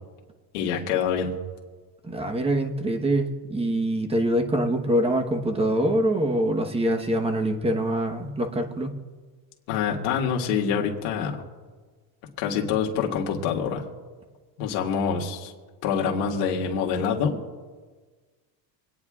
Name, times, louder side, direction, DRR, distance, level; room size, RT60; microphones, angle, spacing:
voice 1, 0.5-1.3 9.7-11.4 12.4-13.8 14.6-15.5 15.8-17.4, left 7 dB, 75° left, -1 dB, 1.8 m, -26 dB
voice 2, 2.1-8.9, right 1 dB, 10° right, 4 dB, 1.1 m, -24 dB
27.0 x 9.4 x 2.4 m, 1.4 s
cardioid pair, 135°, 50 cm